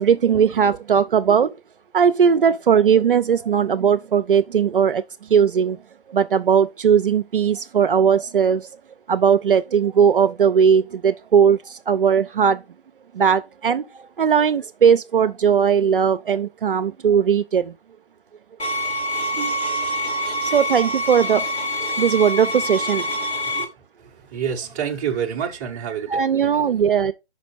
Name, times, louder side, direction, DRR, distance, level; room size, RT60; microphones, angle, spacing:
voice 1, 0.0-1.6 1.9-5.0 5.3-5.8 6.1-8.7 9.1-12.6 13.1-13.9 14.2-17.7 19.4-19.6 20.4-21.7 21.9-23.1 23.6-23.7 26.1-27.1, right 7 dB, 55° right, 0.5 m, -18 dB
sound 1, 18.6-23.6, equal, 70° left, 2.3 m, -25 dB
voice 2, 24.0-26.5, right 8 dB, 15° right, 0.7 m, -28 dB
5.9 x 5.3 x 3.9 m
figure-of-eight pair, 140°, 32 cm